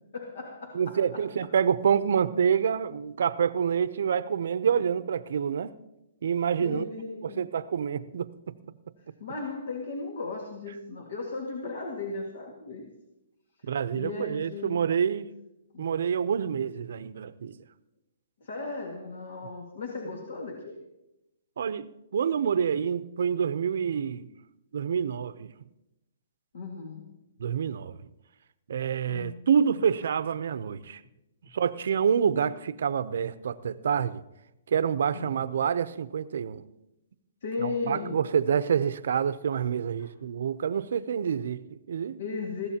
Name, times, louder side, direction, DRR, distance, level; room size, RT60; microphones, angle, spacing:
voice 1, 0.1-1.2 6.6-7.4 9.2-12.9 13.9-14.8 15.7-15.9 18.4-20.8 26.5-27.2 29.1-29.5 35.1-35.3 37.4-38.3 40.0-40.1 42.2-42.7, left 3 dB, 70° left, 1.9 m, -36 dB
voice 2, 0.7-5.7 6.2-6.9 7.2-8.5 13.7-15.3 15.8-17.5 21.6-24.3 24.7-25.5 27.4-28.0 28.7-31.0 31.5-34.2 34.7-36.7 37.6-42.2, right 7 dB, 65° right, 0.6 m, -27 dB
20.5 x 15.5 x 2.9 m
hypercardioid pair, 155°, 0 cm